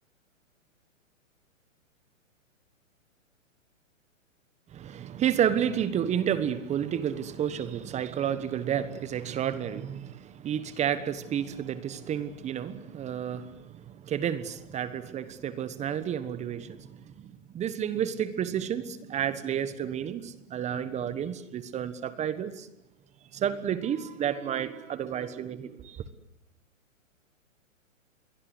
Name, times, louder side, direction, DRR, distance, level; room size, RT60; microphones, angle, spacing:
voice 1, 4.7-17.3 17.5-22.7 23.3-26.0, right 9 dB, 15° right, 1.3 m, -31 dB
29.5 x 22.5 x 8.1 m
hypercardioid pair, 135°, 40 cm